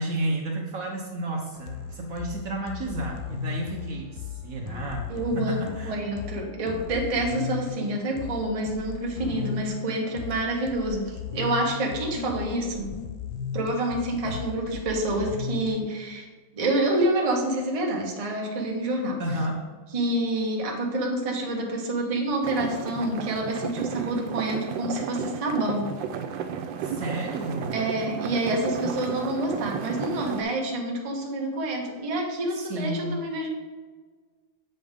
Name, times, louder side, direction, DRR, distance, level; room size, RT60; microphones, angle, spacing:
voice 1, 0.0-5.1 5.3-6.0 14.2-14.5 19.2-19.7 26.8-27.8 32.5-33.2, right 1 dB, 60° right, 0 dB, 1.1 m, -32 dB
sound 1, 1.5-15.8, left 7 dB, 85° left, 1.4 m, -36 dB
voice 2, 5.1-12.9 13.5-16.3 16.5-19.2 19.9-25.9 27.7-33.5, right 1 dB, 25° right, 0 dB, 0.8 m, -28 dB
sound 2, 22.4-30.4, right 7 dB, 90° right, 1.3 m, -33 dB
7.6 x 5.3 x 3.6 m, 1.4 s
omnidirectional pair, 2.0 m